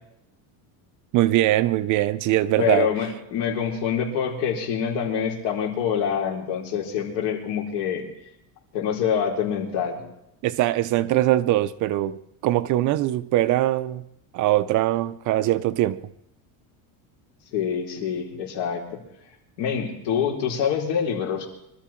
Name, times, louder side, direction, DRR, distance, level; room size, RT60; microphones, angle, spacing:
voice 1, 1.1-2.9 10.4-14.0 14.3-16.0, right 15 dB, 45° right, 0.6 m, -22 dB
voice 2, 2.6-8.1 8.7-10.0 17.5-18.8 19.6-21.4, left 7 dB, 60° left, 4.5 m, -26 dB
24.5 x 13.0 x 4.5 m
cardioid pair, 165°, 45 cm